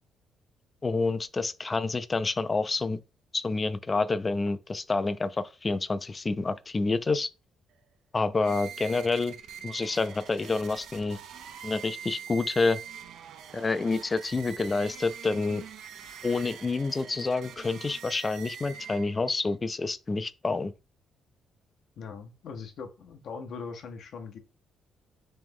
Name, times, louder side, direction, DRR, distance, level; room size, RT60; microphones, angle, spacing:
voice 1, 0.8-3.0 3.3-7.3 8.1-9.4 9.6-11.2 11.6-12.8 13.5-15.6 16.2-20.7, left 3 dB, 30° left, 0.3 m, -28 dB
sound 1, 8.3-19.4, right 8 dB, 80° right, 0.4 m, -44 dB
voice 2, 22.0-24.4, left 5 dB, 65° left, 0.6 m, -40 dB
3.1 x 3.0 x 3.6 m
cardioid pair, 90°, 0 cm